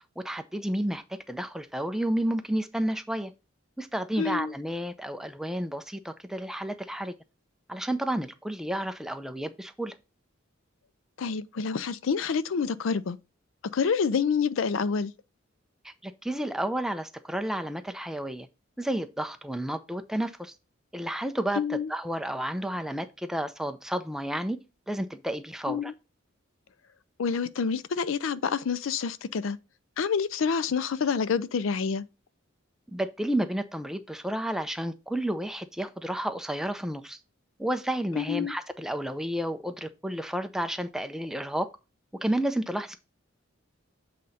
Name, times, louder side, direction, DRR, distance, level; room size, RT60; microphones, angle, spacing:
voice 1, 0.2-3.3 3.8-7.1 7.7-10.0 15.8-18.5 18.8-20.5 20.9-24.6 24.9-25.9 32.9-37.2 37.6-41.7 42.2-43.0, right 1 dB, ahead, 0.5 m, -31 dB
voice 2, 4.2-4.5 11.2-13.2 13.6-15.1 21.5-21.9 25.7-25.9 27.2-29.6 30.0-32.1 38.2-38.5, left 6 dB, 75° left, 0.4 m, -27 dB
7.5 x 3.8 x 4.1 m
head